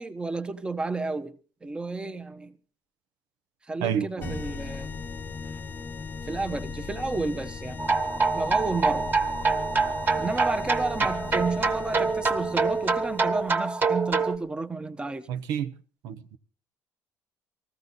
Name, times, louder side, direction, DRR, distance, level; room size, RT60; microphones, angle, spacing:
voice 1, 0.0-2.5 3.7-4.9 6.3-7.8 8.3-9.1 10.2-15.3, right 3 dB, 15° right, 0.9 m, -31 dB
voice 2, 3.8-4.4 15.3-15.7 16.0-16.4, right 8 dB, 80° right, 1.0 m, -29 dB
sound 1, 4.2-13.6, left 5 dB, 30° left, 0.8 m, -38 dB
sound 2, 7.8-14.4, right 4 dB, 30° right, 1.6 m, -25 dB
19.5 x 15.0 x 4.0 m
cardioid pair, 115°, 6 cm